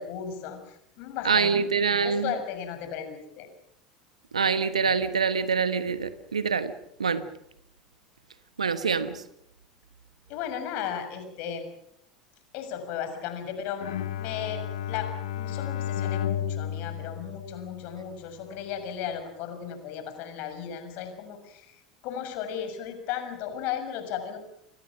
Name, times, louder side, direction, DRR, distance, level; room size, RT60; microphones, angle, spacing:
voice 1, 0.0-1.5 2.0-3.5 10.3-11.7 12.5-15.1 15.3-24.4, left 8 dB, 55° left, 8 dB, 6.7 m, -35 dB
voice 2, 1.2-2.3 4.3-6.7 7.0-7.2 8.6-9.2, right 5 dB, 85° right, 12 dB, 1.3 m, -25 dB
Bowed string instrument, 13.8-18.2, left 10 dB, 70° left, 1.6 m, -33 dB
28.5 x 21.5 x 6.1 m, 0.76 s
figure-of-eight pair, 75°, 3 cm